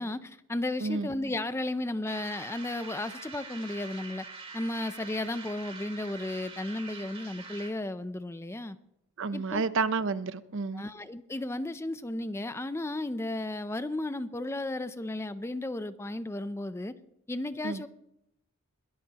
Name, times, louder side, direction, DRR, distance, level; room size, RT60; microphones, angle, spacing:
voice 1, 0.0-4.2 4.5-8.8 9.3-9.6 10.7-16.9 17.3-17.9, left 1 dB, 10° left, 0.4 m, -34 dB
voice 2, 0.8-1.1 9.2-10.8 17.6-17.8, right 4 dB, 55° right, 0.6 m, -30 dB
sound 1, 2.1-7.9, right 4 dB, 25° right, 2.8 m, -45 dB
21.5 x 13.5 x 2.9 m
head